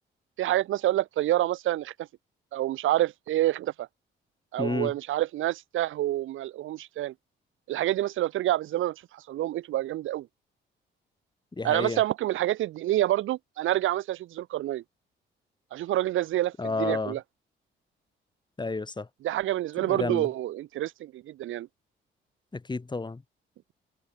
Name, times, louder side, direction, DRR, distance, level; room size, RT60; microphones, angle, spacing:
voice 1, 0.4-1.9 2.5-3.9 4.5-7.1 7.7-10.3 11.6-14.8 15.7-17.2 19.2-21.7, right 14 dB, 85° right, 4.4 m, -27 dB
voice 2, 4.6-4.9 11.6-12.0 16.6-17.2 18.6-19.1 19.8-20.3 22.5-23.2, left 3 dB, 20° left, 4.7 m, -31 dB
cardioid pair, 90°, 20 cm